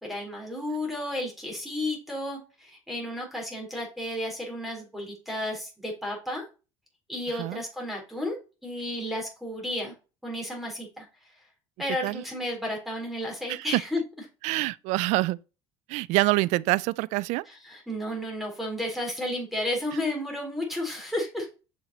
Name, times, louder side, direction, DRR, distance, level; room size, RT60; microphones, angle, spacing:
voice 1, 0.0-6.4 7.1-9.9 10.2-11.1 11.8-14.0 17.5-21.5, left 1 dB, ahead, 3.8 m, -32 dB
voice 2, 14.4-15.4 15.9-17.4, right 20 dB, 70° right, 0.4 m, -26 dB
6.5 x 6.1 x 4.1 m
supercardioid pair, 80°, 12 cm